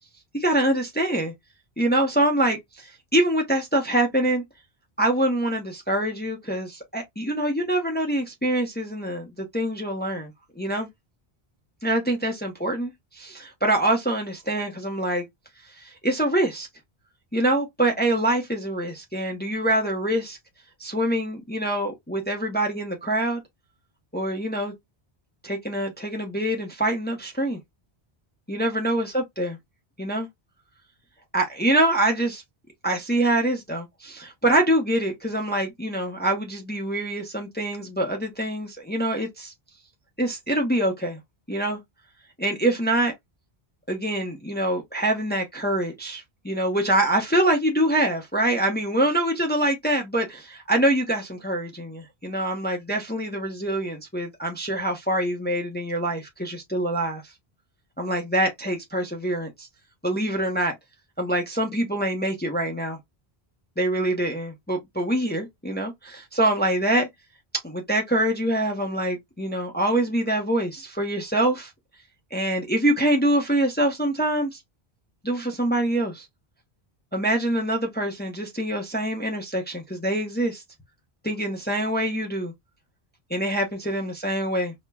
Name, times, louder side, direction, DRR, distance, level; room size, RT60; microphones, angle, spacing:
voice 1, 0.3-1.3 1.8-4.4 5.0-10.3 10.6-10.9 11.8-15.2 15.8-16.7 17.3-20.4 20.8-23.4 24.1-24.7 25.4-27.6 28.5-29.6 30.0-30.3 31.3-32.4 32.8-39.5 40.2-41.2 41.5-41.8 42.4-43.1 43.9-57.2 58.0-59.7 60.0-60.8 61.2-63.0 63.8-67.1 67.6-71.7 72.3-74.6 75.2-76.2 77.1-80.6 81.2-82.5 83.3-84.7, right 1 dB, 10° left, 0.6 m, -25 dB
4.3 x 2.1 x 2.2 m
omnidirectional pair, 1.0 m